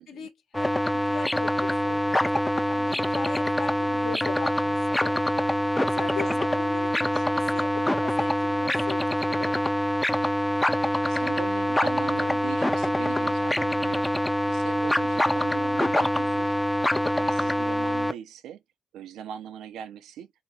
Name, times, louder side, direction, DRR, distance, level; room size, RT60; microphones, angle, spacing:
voice 1, 0.0-2.4 2.7-5.2 5.9-9.6, left 6 dB, 70° left, 1.2 m, -40 dB
sound 1, 0.5-18.1, left 1 dB, 10° left, 0.5 m, -25 dB
voice 2, 10.7-16.6 17.1-18.6 18.9-20.3, right 10 dB, 85° right, 0.6 m, -40 dB
3.8 x 2.8 x 2.7 m
cardioid pair, 90°, 0 cm